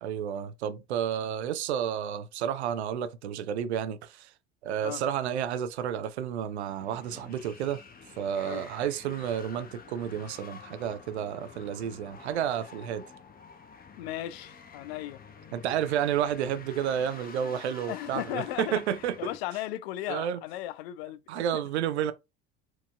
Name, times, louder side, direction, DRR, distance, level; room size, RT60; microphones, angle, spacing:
voice 1, 0.0-4.3 4.6-7.8 8.2-13.0 15.5-19.2 20.1-20.4 21.3-22.1, right 9 dB, 75° right, 0.6 m, -31 dB
sound 1, 6.5-19.4, left 5 dB, 25° left, 0.9 m, -49 dB
voice 2, 14.0-15.2 17.9-18.8 19.2-21.6, left 14 dB, 65° left, 0.5 m, -36 dB
4.5 x 2.9 x 2.4 m
figure-of-eight pair, 65°, 33 cm